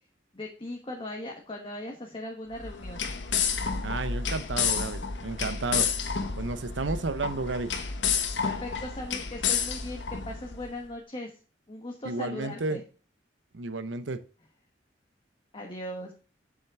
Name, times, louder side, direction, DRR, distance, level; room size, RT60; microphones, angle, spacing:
voice 1, 0.3-3.0 8.4-11.3 11.7-12.8 15.5-16.1, left 1 dB, 30° left, 1 dB, 1.2 m, -38 dB
sound 1, 2.5-10.7, left 6 dB, 70° left, 1.1 m, -30 dB
voice 2, 3.8-5.9 6.4-7.7 12.0-12.8 13.5-14.2, right 3 dB, 85° right, 12 dB, 0.8 m, -32 dB
7.3 x 6.4 x 3.5 m, 0.37 s
head